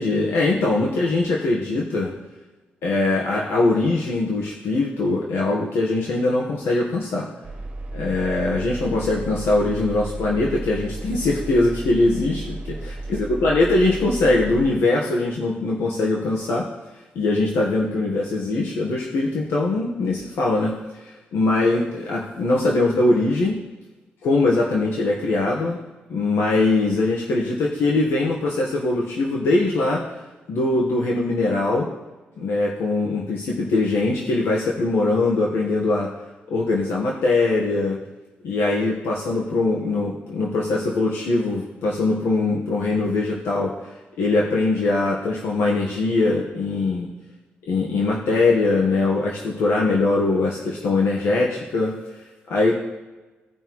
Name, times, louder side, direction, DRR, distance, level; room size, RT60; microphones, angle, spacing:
voice 1, 0.0-2.1 2.8-7.3 7.9-16.6 17.1-23.5 24.2-25.8 26.1-30.0 30.5-31.9 32.4-36.1 36.5-38.0 38.4-43.9 44.2-47.1 47.7-52.8, left 2 dB, 85° left, -2 dB, 1.2 m, -22 dB
Engine, 7.4-14.7, right 2 dB, 30° right, 0.9 m, -33 dB
16.5 x 5.5 x 3.1 m, 1.2 s
wide cardioid pair, 135°, 4 cm